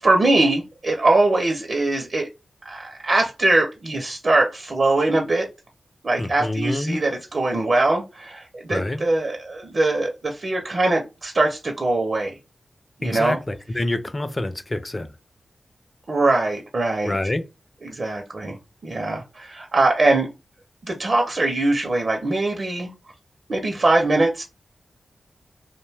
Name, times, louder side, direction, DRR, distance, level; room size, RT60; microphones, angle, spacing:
voice 1, 0.0-2.3 2.6-5.5 6.0-12.4 13.0-13.4 16.1-17.1 17.8-18.6 18.8-20.3 20.8-22.9 23.5-24.4, right 2 dB, 50° right, 0.5 m, -22 dB
voice 2, 6.2-7.0 8.7-9.0 13.0-15.1 17.0-17.4, left 1 dB, 25° left, 0.4 m, -26 dB
2.5 x 2.1 x 3.2 m
wide cardioid pair, 100°, 0 cm